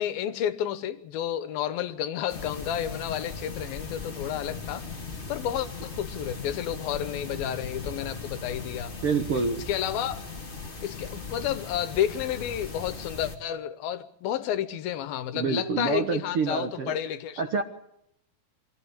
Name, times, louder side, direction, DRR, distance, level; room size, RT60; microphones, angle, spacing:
voice 1, 0.0-4.9 5.3-8.9 9.7-10.2 10.8-17.4, left 10 dB, 85° left, 12 dB, 2.9 m, -31 dB
sound 1, 2.3-13.4, left 4 dB, 20° left, 2.0 m, -38 dB
voice 2, 9.0-9.6 15.3-16.9 17.4-17.6, right 4 dB, 55° right, 6 dB, 1.7 m, -27 dB
25.0 x 14.5 x 8.6 m, 0.74 s
omnidirectional pair, 4.1 m